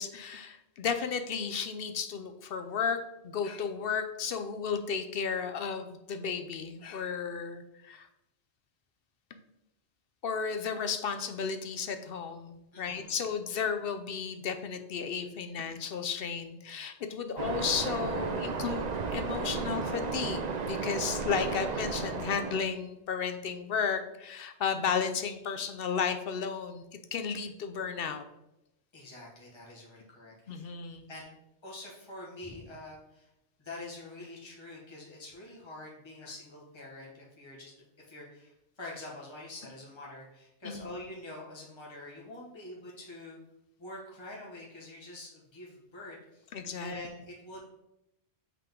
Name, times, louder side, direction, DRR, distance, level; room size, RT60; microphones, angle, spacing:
voice 1, 0.0-8.1 10.2-26.8 27.1-28.2 30.5-31.1 40.6-40.9 46.5-46.9, left 6 dB, 65° left, 7 dB, 0.8 m, -33 dB
voice 2, 12.7-13.2 28.9-30.7 31.1-31.3 31.6-33.3 33.6-43.4 43.8-47.7, left 2 dB, 25° left, -5 dB, 1.6 m, -46 dB
Waves surf, 17.4-22.6, right 4 dB, 45° right, 0.6 m, -33 dB
8.3 x 3.8 x 3.7 m, 0.86 s
omnidirectional pair, 1.1 m